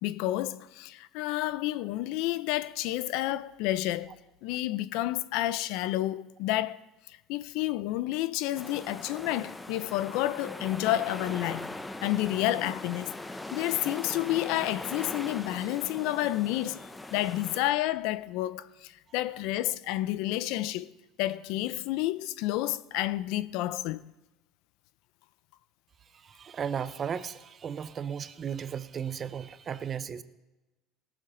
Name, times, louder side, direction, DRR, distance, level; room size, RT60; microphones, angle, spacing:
voice 1, 0.0-4.1 4.4-6.8 7.3-11.7 12.0-13.1 13.5-20.9 21.2-24.0, left 15 dB, 75° left, 0.5 m, -30 dB
sound 1, 8.5-17.6, left 2 dB, 10° left, 0.7 m, -40 dB
voice 2, 26.1-30.2, right 7 dB, 35° right, 0.6 m, -35 dB
17.5 x 7.3 x 5.0 m
cardioid pair, 125°, 0 cm